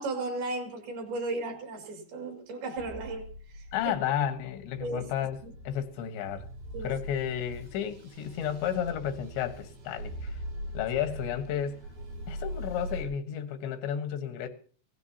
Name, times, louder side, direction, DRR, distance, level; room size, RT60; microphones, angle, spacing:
voice 1, 0.0-3.3 3.5-4.1 4.8-5.1 5.4-5.5 6.7-6.9, right 2 dB, 65° right, 4.1 m, -35 dB
sound 1, 2.8-13.0, equal, 85° right, 6.8 m, -41 dB
voice 2, 3.7-6.5 6.8-10.4 10.8-11.8 12.3-14.5, left 9 dB, 85° left, 3.6 m, -32 dB
23.0 x 17.0 x 2.8 m
omnidirectional pair, 5.0 m